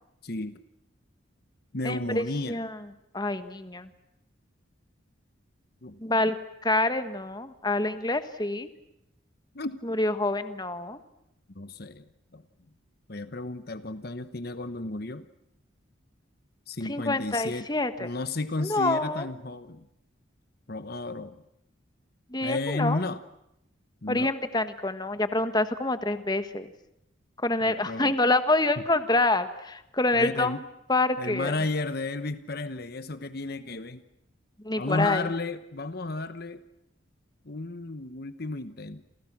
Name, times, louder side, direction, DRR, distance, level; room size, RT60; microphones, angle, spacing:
voice 1, 0.2-0.6 1.7-2.6 5.8-6.0 9.5-9.8 11.5-12.4 13.1-15.3 16.7-17.7 18.0-19.9 20.7-21.4 22.4-23.2 24.0-24.3 27.6-28.2 28.8-28.9 30.1-30.6 31.2-34.0 34.8-36.6 37.4-39.2, left 2 dB, 50° left, 12 dB, 1.1 m, -33 dB
voice 2, 1.8-2.8 3.1-3.9 6.0-6.4 6.6-8.7 9.8-11.0 16.8-18.1 18.6-19.3 22.3-23.0 24.1-26.7 27.4-30.5 30.9-31.5 34.6-35.3, left 2 dB, 20° left, 10 dB, 1.4 m, -26 dB
29.5 x 28.0 x 6.1 m, 0.81 s
head